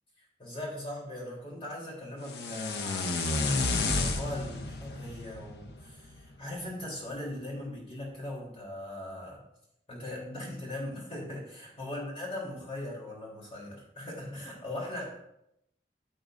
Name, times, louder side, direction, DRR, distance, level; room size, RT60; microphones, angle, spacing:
voice 1, 0.2-9.4 9.9-15.2, left 1 dB, 30° left, -3 dB, 3.3 m, -40 dB
sound 1, 2.2-6.4, left 3 dB, 70° left, 0.8 m, -31 dB
14.0 x 7.7 x 2.6 m, 0.81 s
head